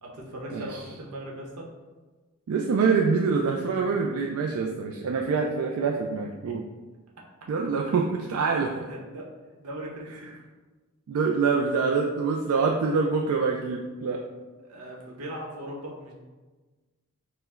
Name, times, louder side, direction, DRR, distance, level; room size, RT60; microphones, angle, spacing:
voice 1, 0.0-1.7 6.5-6.6 8.5-9.3 9.6-10.3 14.6-16.1, right 1 dB, 90° right, -2 dB, 0.9 m, -39 dB
voice 2, 2.5-6.6 7.5-8.7 11.1-14.2, right 5 dB, 75° right, 0 dB, 0.3 m, -25 dB
4.3 x 2.2 x 4.3 m, 1.3 s
head